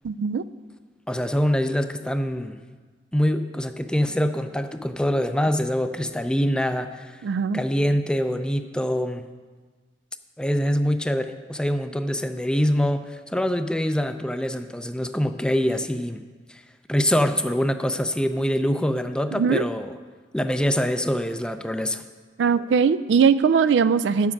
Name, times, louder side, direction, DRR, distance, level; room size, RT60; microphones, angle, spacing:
voice 1, 0.0-0.4 7.2-7.6 19.4-19.6 22.4-24.3, right 6 dB, 85° right, 15 dB, 0.3 m, -20 dB
voice 2, 1.1-2.6 3.1-7.2 7.5-9.2 10.4-16.2 16.9-19.9 20.3-22.0, equal, 5° left, 9 dB, 0.4 m, -24 dB
9.7 x 7.4 x 5.8 m, 1.4 s
head